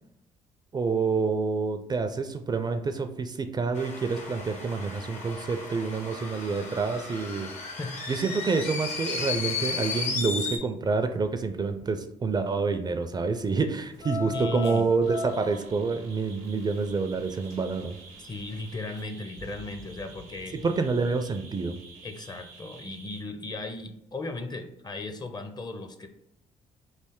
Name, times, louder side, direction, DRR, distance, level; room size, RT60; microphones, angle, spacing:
voice 1, 0.7-7.5 8.1-18.0 20.6-21.8, right 4 dB, 30° right, 8 dB, 0.4 m, -28 dB
sound 1, 3.7-10.6, left 4 dB, 60° left, 0.8 m, -34 dB
sound 2, 13.9-17.8 18.1-18.6 19.0-19.1, left 1 dB, 80° left, 1.4 m, -37 dB
voice 2, 14.3-14.8 18.2-20.5 22.0-26.1, left 2 dB, 30° left, 7 dB, 0.6 m, -36 dB
sound 3, 15.0-23.2, right 3 dB, 85° right, 0.7 m, -49 dB
3.2 x 2.5 x 3.6 m, 0.76 s
supercardioid pair, 60°, 14 cm